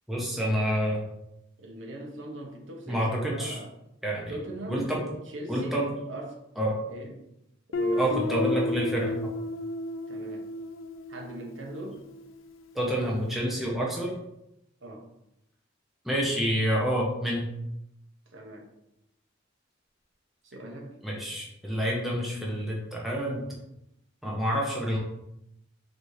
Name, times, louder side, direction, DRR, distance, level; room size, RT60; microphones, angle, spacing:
voice 1, 0.1-1.0 2.9-3.6 4.0-4.3 4.7-5.0 5.5-5.9 6.6-6.8 8.0-9.3 12.7-14.1 16.0-17.5 21.0-23.4 24.2-25.0, equal, ahead, -4 dB, 0.7 m, -28 dB
voice 2, 1.6-3.7 4.3-4.9 5.3-6.4 6.9-7.2 7.7-8.2 10.1-10.5 11.1-12.0 14.8-15.1 18.3-18.7 20.4-21.0, right 1 dB, 70° right, 1 dB, 0.9 m, -40 dB
Guitar, 7.7-12.4, left 2 dB, 80° left, 0.5 m, -32 dB
4.1 x 2.6 x 4.7 m, 0.83 s
head